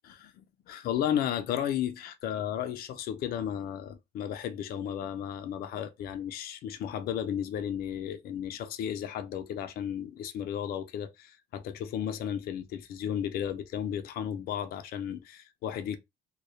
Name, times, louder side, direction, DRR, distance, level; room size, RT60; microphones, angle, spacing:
voice 1, 0.2-16.0, left 9 dB, 65° left, 0.4 m, -34 dB
2.2 x 2.0 x 2.8 m
cardioid pair, 110°, 17 cm